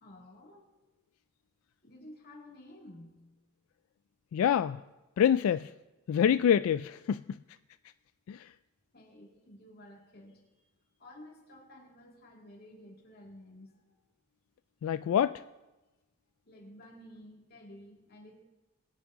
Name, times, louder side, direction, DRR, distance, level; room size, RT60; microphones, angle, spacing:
voice 1, 0.0-0.7 1.8-3.3 8.9-10.7 11.0-14.0 16.5-18.4, left 1 dB, 50° left, 2.4 m, -52 dB
voice 2, 4.3-4.8 5.2-5.7 6.1-7.4 8.3-8.5 14.8-15.4, left 8 dB, 90° left, 0.3 m, -26 dB
20.0 x 8.8 x 3.7 m
head